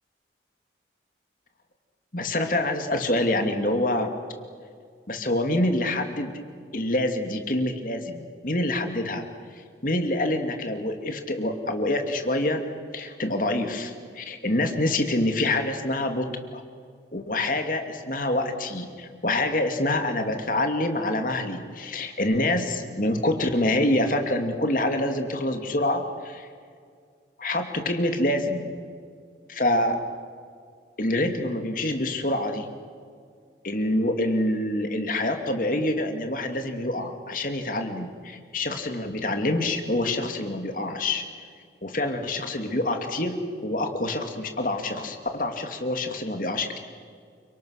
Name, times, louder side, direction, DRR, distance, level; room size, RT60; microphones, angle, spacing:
voice 1, 2.1-4.1 5.1-6.3 6.7-9.3 9.8-12.6 12.9-16.6 17.1-26.5 27.4-28.7 29.5-30.0 31.0-32.7 33.6-41.2 41.8-46.8, left 1 dB, 50° left, 5 dB, 2.6 m, -26 dB
29.5 x 25.5 x 6.6 m, 2.1 s
head